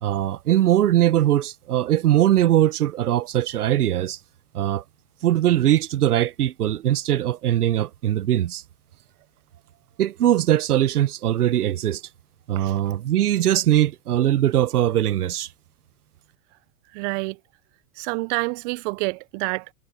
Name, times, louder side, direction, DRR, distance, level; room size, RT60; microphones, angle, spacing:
voice 1, 0.0-4.2 4.5-4.8 5.2-8.6 10.0-12.0 12.5-15.5, right 12 dB, 80° right, 1.3 m, -21 dB
voice 2, 16.9-17.4 18.0-19.7, right 27 dB, 55° right, 1.3 m, -28 dB
hypercardioid pair, 100°, 45 cm